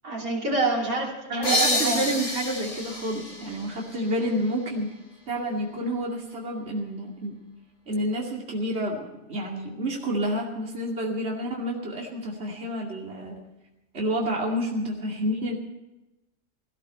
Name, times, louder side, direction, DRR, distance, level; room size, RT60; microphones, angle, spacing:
voice 1, 0.0-2.0, right 3 dB, 75° right, -1 dB, 3.5 m, -27 dB
voice 2, 1.3-4.9 5.3-7.4 7.9-9.0 9.3-13.4 13.9-15.5, equal, 45° right, -2 dB, 2.7 m, -29 dB
sound 1, 1.4-4.8, left 1 dB, 55° left, 5.4 m, -29 dB
17.5 x 15.5 x 4.4 m, 1.0 s
omnidirectional pair, 1.5 m